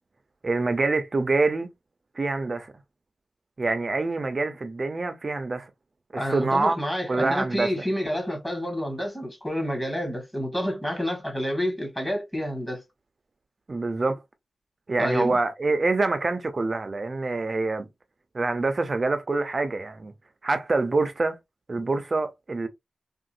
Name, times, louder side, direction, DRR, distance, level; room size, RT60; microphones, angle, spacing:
voice 1, 0.4-1.7 2.2-2.7 3.6-5.7 6.1-6.8 7.1-7.9 13.7-14.2 14.9-17.9 18.3-20.1 20.4-21.4 21.7-22.7, right 3 dB, 45° right, 0.7 m, -26 dB
voice 2, 6.1-12.8 15.0-15.4, equal, 15° left, 1.6 m, -29 dB
3.7 x 2.5 x 2.5 m
wide cardioid pair, 95°, 0 cm